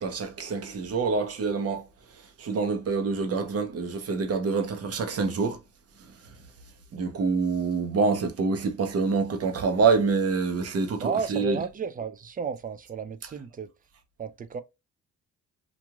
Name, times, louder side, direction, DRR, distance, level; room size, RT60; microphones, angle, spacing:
voice 1, 0.0-1.8 2.4-5.6 6.9-11.6, right 4 dB, 55° right, 0.9 m, -26 dB
voice 2, 11.0-13.7 14.2-14.6, right 6 dB, 30° right, 0.4 m, -33 dB
2.9 x 2.5 x 2.3 m
cardioid pair, 90°, 30 cm